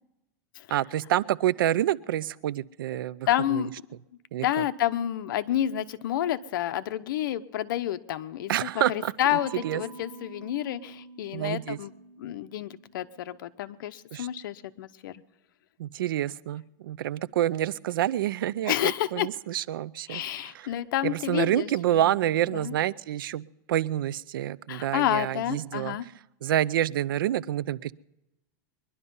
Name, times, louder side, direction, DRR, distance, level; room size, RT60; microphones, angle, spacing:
voice 1, 0.7-3.6 4.3-4.5 8.5-9.8 11.3-11.8 14.1-14.3 15.8-20.2 20.5-20.7 21.0-26.0 26.4-27.9, right 12 dB, 90° right, 20 dB, 0.5 m, -28 dB
voice 2, 3.3-3.7 4.4-11.9 12.2-15.2 18.7-19.3 20.1-21.7 21.9-22.1 22.5-22.7 24.7-26.0, left 12 dB, 75° left, 12 dB, 0.8 m, -29 dB
Mallet percussion, 9.3-13.3, right 3 dB, 10° right, 5.0 m, -47 dB
22.5 x 11.0 x 5.4 m, 0.93 s
supercardioid pair, 150°, 11 cm